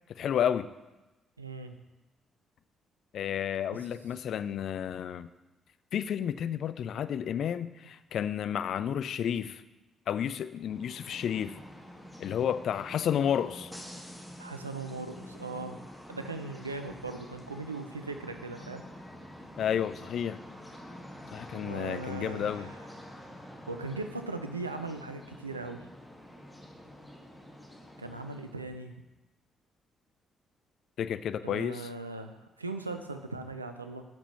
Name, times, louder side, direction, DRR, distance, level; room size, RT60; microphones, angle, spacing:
voice 1, 0.2-0.7 3.1-5.3 5.9-9.6 10.1-11.5 12.2-13.7 19.6-20.4 21.3-22.7 31.0-31.9, left 9 dB, 55° left, 13 dB, 0.3 m, -31 dB
voice 2, 1.4-1.7 3.7-3.9 14.4-15.8 16.1-18.8 21.5-22.8 23.7-25.9 28.0-29.0 31.4-34.0, right 3 dB, 90° right, 7 dB, 0.4 m, -39 dB
sound 1, 10.5-28.6, equal, 5° left, 1.9 m, -48 dB
13.5 x 6.0 x 3.1 m, 1.1 s
figure-of-eight pair, 40°, 0 cm